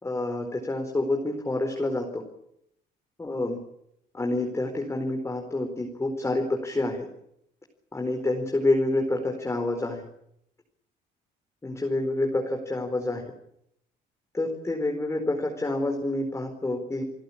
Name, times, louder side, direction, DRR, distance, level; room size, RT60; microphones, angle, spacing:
voice 1, 0.0-2.2 3.2-3.6 4.1-7.0 7.9-10.0 11.6-13.2 14.3-17.0, left 2 dB, 15° left, 3 dB, 4.5 m, -28 dB
29.5 x 17.0 x 8.7 m, 0.77 s
cardioid pair, 110°, 17 cm